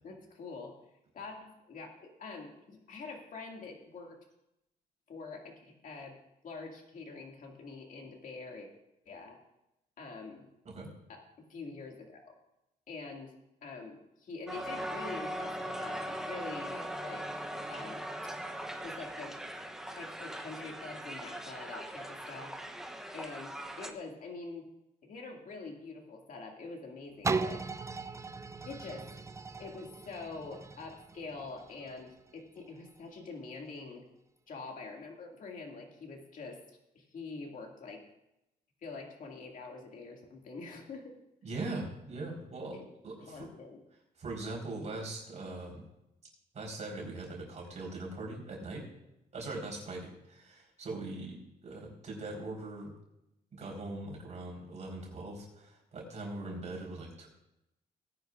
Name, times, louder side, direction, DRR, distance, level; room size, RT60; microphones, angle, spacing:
voice 1, 0.0-0.7 1.1-4.2 5.1-6.2 6.4-8.7 9.1-9.4 10.0-10.4 11.1-11.2 11.5-12.4 12.9-13.4 13.6-17.3 17.7-18.1 18.8-19.3 19.9-22.5 23.1-24.7 25.0-27.6 28.7-29.1 29.6-34.1 34.5-36.6 36.9-38.0 38.8-41.1 42.7-42.9 43.2-43.8, left 3 dB, 55° left, 1 dB, 2.3 m, -45 dB
Crowd, 14.5-23.9, right 1 dB, 5° right, 0.8 m, -40 dB
sound 1, 27.2-33.0 33.6-33.7, right 4 dB, 20° right, 0.4 m, -38 dB
voice 2, 41.4-42.8 43.0-43.5 44.2-45.9 46.5-48.8 49.3-52.9 53.5-57.3, right 2 dB, 45° right, -2 dB, 4.1 m, -41 dB
19.0 x 9.6 x 2.5 m, 0.87 s
cardioid pair, 115°, 17 cm